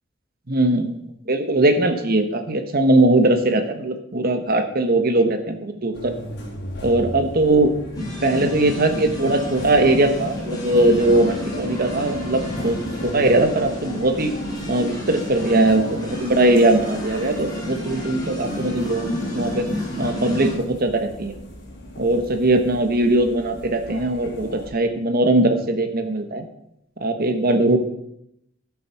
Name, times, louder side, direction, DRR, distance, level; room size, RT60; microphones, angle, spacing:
voice 1, 0.5-1.0 1.3-6.1 6.8-7.7 8.2-12.8 13.0-14.4 14.7-19.7 20.0-21.3 22.0-26.4 27.0-27.8, right 2 dB, 50° right, 7 dB, 1.3 m, -20 dB
sound 1, 5.9-24.7, left 1 dB, 60° left, 3.5 m, -37 dB
sound 2, 7.9-20.5, left 1 dB, 20° left, 3.4 m, -31 dB
12.5 x 7.3 x 5.9 m, 0.78 s
head